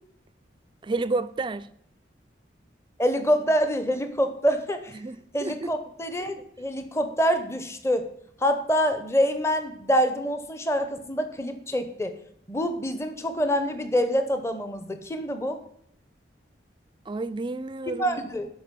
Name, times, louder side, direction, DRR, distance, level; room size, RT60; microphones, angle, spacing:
voice 1, 0.8-1.7 4.9-5.7 6.4-6.5 17.1-18.2, right 3 dB, 25° right, 0.3 m, -30 dB
voice 2, 3.0-4.9 5.3-8.1 8.4-12.1 12.5-15.6 18.0-18.5, equal, 15° left, 0.7 m, -26 dB
12.0 x 4.7 x 5.2 m
head